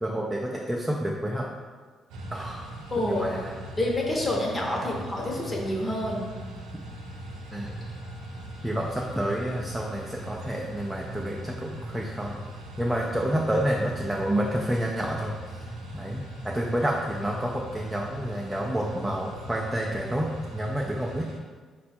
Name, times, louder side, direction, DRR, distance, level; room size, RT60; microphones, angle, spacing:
voice 1, 0.0-1.5 2.3-2.7 3.1-3.5 4.8-4.9 7.5-7.9 8.6-12.4 12.8-21.3, right 1 dB, 5° right, -3 dB, 0.4 m, -29 dB
sound 1, 2.1-21.4, right 1 dB, 90° right, 0.5 m, -40 dB
voice 2, 2.9-3.3 3.8-6.3, left 1 dB, 25° left, -2 dB, 0.9 m, -28 dB
4.1 x 2.3 x 4.2 m, 1.5 s
cardioid pair, 90°, 0 cm